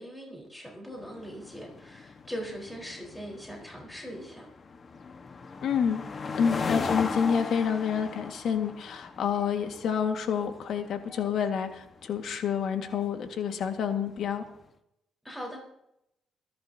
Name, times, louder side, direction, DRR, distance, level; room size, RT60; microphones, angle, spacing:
voice 1, 0.0-4.5 6.4-6.7 15.2-15.6, equal, 5° left, -2 dB, 4.2 m, -41 dB
sound 1, 1.0-14.5, left 4 dB, 40° left, 1.3 m, -38 dB
voice 2, 5.6-6.0 6.4-14.4, left 7 dB, 70° left, 6 dB, 1.7 m, -28 dB
26.0 x 11.0 x 2.8 m, 0.81 s
cardioid pair, 90°, 0 cm